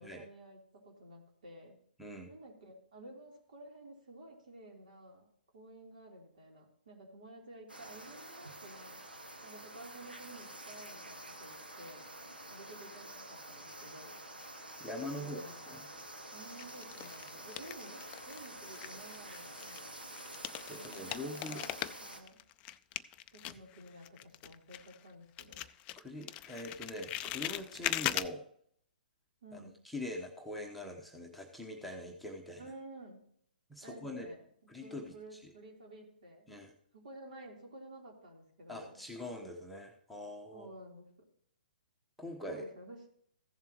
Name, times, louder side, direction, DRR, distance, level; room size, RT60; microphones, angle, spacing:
voice 1, 0.0-1.8 2.3-5.3 5.5-9.0 9.4-12.1 12.5-14.2 15.2-15.7 16.3-19.9 20.7-21.7 22.0-22.4 23.3-25.6 29.4-29.8 32.6-33.3 33.8-34.4 34.8-36.5 36.9-39.0 40.5-41.1 42.5-43.1, right 1 dB, 60° right, 0 dB, 3.8 m, -52 dB
voice 2, 2.0-2.3 14.8-15.4 15.7-15.8 20.7-21.6 26.0-28.4 29.5-32.6 33.7-34.3 34.7-35.4 36.5-36.7 38.7-40.7 42.2-42.6, left 1 dB, ahead, 0 dB, 1.1 m, -43 dB
sound 1, 7.7-22.2, right 1 dB, 90° right, 1.8 m, -48 dB
sound 2, 15.4-16.0 16.6-18.5 18.7-25.1 25.4-28.3, left 14 dB, 25° left, 0.4 m, -40 dB
15.0 x 7.3 x 3.1 m, 0.67 s
figure-of-eight pair, 125°, 5 cm